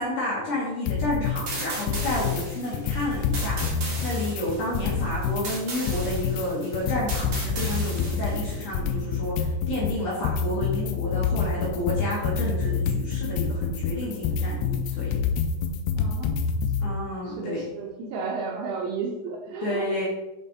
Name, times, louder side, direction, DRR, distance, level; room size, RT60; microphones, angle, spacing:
voice 1, 0.0-15.2 16.8-17.6 19.6-20.1, left 1 dB, 60° left, -6 dB, 2.2 m, -30 dB
sound 1, 0.9-1.4 1.7-2.4 2.7-5.4 5.7-16.9, left 5 dB, 85° left, 2.4 m, -27 dB
sound 2, 1.5-8.6, right 2 dB, 45° right, 1.6 m, -36 dB
voice 2, 4.7-5.1 16.0-16.5 17.2-20.1, right 4 dB, 80° right, -1 dB, 2.4 m, -33 dB
6.4 x 5.4 x 4.0 m, 1.0 s
omnidirectional pair, 5.4 m